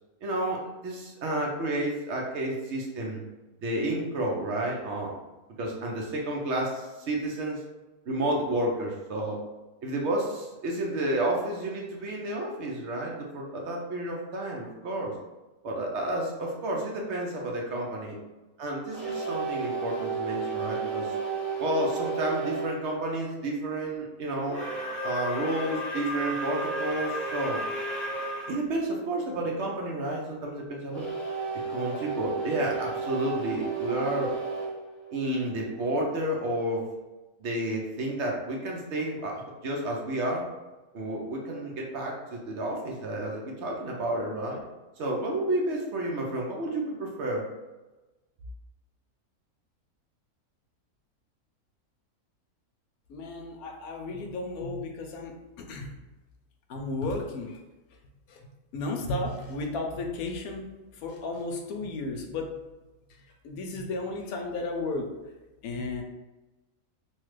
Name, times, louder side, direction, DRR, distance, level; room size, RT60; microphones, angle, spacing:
voice 1, 0.2-3.2 3.6-5.1 5.6-7.6 8.1-9.4 9.8-15.1 15.6-18.2 18.6-21.1 21.6-24.6 25.0-27.6 28.5-31.1 31.7-34.3 35.1-36.8 37.4-40.4 40.9-44.6 45.0-47.4, right 1 dB, 60° right, -1 dB, 0.8 m, -31 dB
sound 1, 18.9-22.8 24.4-28.6 30.9-35.8, right 3 dB, ahead, 0.6 m, -33 dB
voice 2, 53.1-55.3 55.7-55.9 56.7-57.6 58.3-58.4 58.7-62.5 63.4-65.1 65.6-66.0, left 2 dB, 75° left, 2 dB, 1.0 m, -33 dB
3.1 x 2.3 x 3.1 m, 1.1 s
omnidirectional pair, 1.6 m